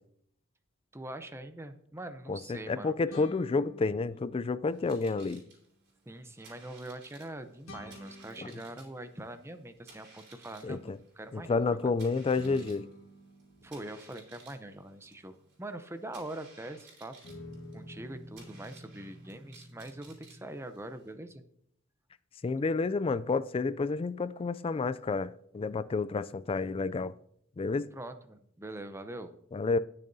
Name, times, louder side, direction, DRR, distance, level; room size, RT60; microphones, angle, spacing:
voice 1, 0.9-3.0 6.1-11.9 13.6-17.2 17.7-21.4 27.9-29.3, right 1 dB, 15° right, 0.6 m, -43 dB
voice 2, 2.3-5.4 8.4-8.5 10.6-11.0 11.3-12.9 22.4-27.1 27.6-27.9 29.5-29.8, left 4 dB, 25° left, 0.3 m, -30 dB
sound 1, 3.1-4.8 7.7-10.0 12.3-16.7 17.2-20.5, equal, 80° left, 1.8 m, -51 dB
sound 2, 4.7-21.1, right 3 dB, 55° right, 3.8 m, -58 dB
19.0 x 6.6 x 2.7 m
head